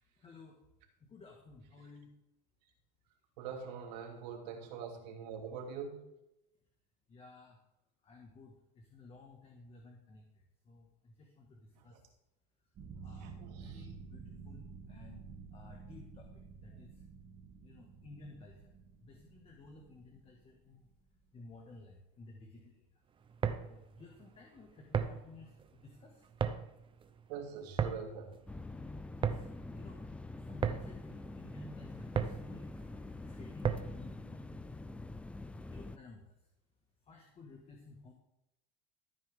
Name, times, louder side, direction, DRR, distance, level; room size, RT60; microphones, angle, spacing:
voice 1, 0.2-0.6 1.0-2.1 4.4-4.6 7.1-7.6 8.0-12.0 13.0-15.3 15.5-17.0 17.6-18.8 19.0-20.9 21.3-23.0 23.7-26.2 29.2-30.0 30.4-32.7 33.3-34.7 35.6-36.3 37.0-38.1, left 3 dB, 30° left, 1 dB, 1.8 m, -55 dB
voice 2, 3.4-6.0 11.8-12.0 13.1-13.9 27.3-28.4, right 6 dB, 90° right, 2 dB, 2.6 m, -44 dB
sound 1, 12.8-21.2, right 5 dB, 40° right, 2.1 m, -51 dB
sound 2, 23.2-34.1, right 7 dB, 25° right, 0.8 m, -38 dB
sound 3, 28.5-36.0, left 2 dB, 5° left, 0.4 m, -45 dB
14.0 x 9.3 x 3.7 m, 0.85 s
supercardioid pair, 130°, 21 cm